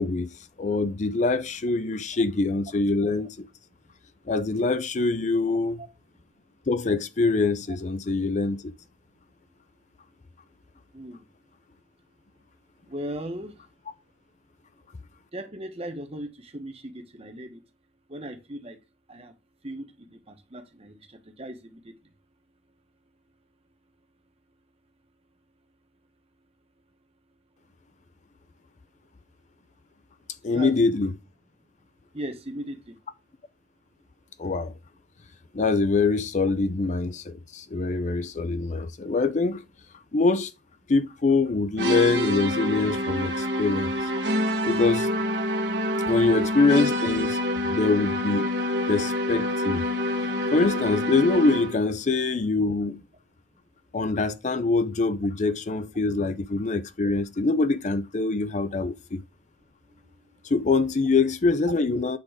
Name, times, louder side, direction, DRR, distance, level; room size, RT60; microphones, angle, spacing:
voice 1, 0.0-3.5 4.3-5.8 6.7-8.7 30.4-31.1 34.4-34.7 35.5-39.6 40.1-40.5 40.9-43.9 44.7-45.1 46.1-47.4 47.7-48.5 48.9-49.8 50.5-53.0 53.9-59.2 60.4-62.2, left 3 dB, 40° left, 0.5 m, -24 dB
voice 2, 12.9-13.5 15.3-17.6 18.1-18.8 19.1-19.3 19.6-21.0 21.4-21.9 30.5-30.7 32.1-32.8, right 1 dB, 35° right, 1.2 m, -37 dB
sound 1, 41.8-51.9, left 1 dB, 65° right, 1.4 m, -27 dB
8.4 x 3.7 x 5.0 m
head